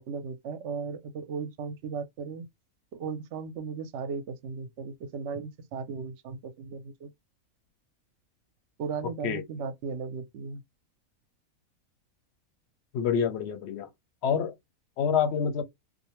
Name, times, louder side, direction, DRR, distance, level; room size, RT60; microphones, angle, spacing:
voice 1, 0.0-2.5 2.9-7.1 8.8-10.6, right 5 dB, 65° right, 0.8 m, -36 dB
voice 2, 12.9-13.9 14.2-14.5 15.0-15.6, left 7 dB, 60° left, 0.8 m, -27 dB
2.5 x 2.1 x 2.9 m
omnidirectional pair, 1.5 m